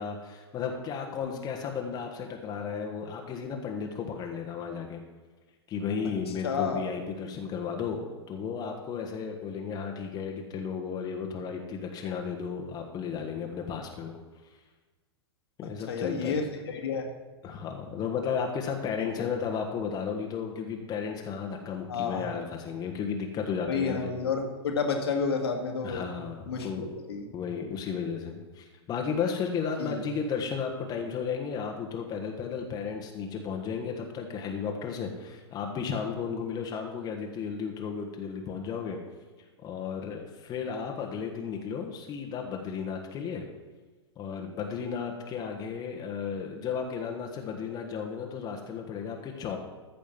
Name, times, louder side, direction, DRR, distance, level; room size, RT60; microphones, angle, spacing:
voice 1, 0.0-5.0 5.7-8.0 8.3-14.2 15.6-16.4 17.4-24.2 25.8-26.9 27.3-39.0 39.6-43.4 44.2-49.6, left 6 dB, 25° left, 2 dB, 1.4 m, -34 dB
voice 2, 6.4-6.8 15.9-16.4 16.7-17.1 19.0-19.3 21.9-22.3 23.7-26.1 26.5-27.3 29.8-30.0, left 5 dB, 65° left, 2 dB, 2.0 m, -30 dB
14.5 x 5.2 x 7.2 m, 1.3 s
figure-of-eight pair, 100°, 14 cm